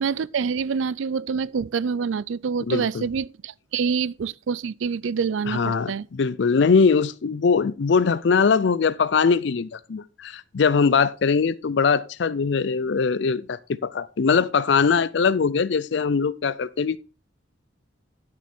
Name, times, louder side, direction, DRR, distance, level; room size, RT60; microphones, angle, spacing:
voice 1, 0.0-6.1, right 6 dB, 75° right, 0.4 m, -26 dB
voice 2, 2.7-3.0 5.5-17.0, left 5 dB, 60° left, 0.4 m, -21 dB
11.5 x 6.9 x 4.3 m
head